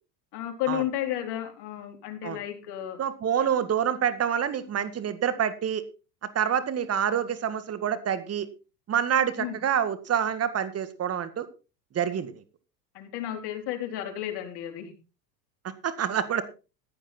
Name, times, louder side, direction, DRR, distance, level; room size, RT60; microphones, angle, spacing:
voice 1, 0.3-3.0 3.4-3.5 9.4-9.6 12.9-14.9, left 12 dB, 55° left, 5 dB, 4.2 m, -33 dB
voice 2, 3.0-5.8 6.4-8.5 8.9-11.5 11.9-12.4 15.8-16.4, right 8 dB, 30° right, 13 dB, 1.9 m, -27 dB
15.5 x 10.0 x 4.3 m, 0.32 s
supercardioid pair, 110°, 48 cm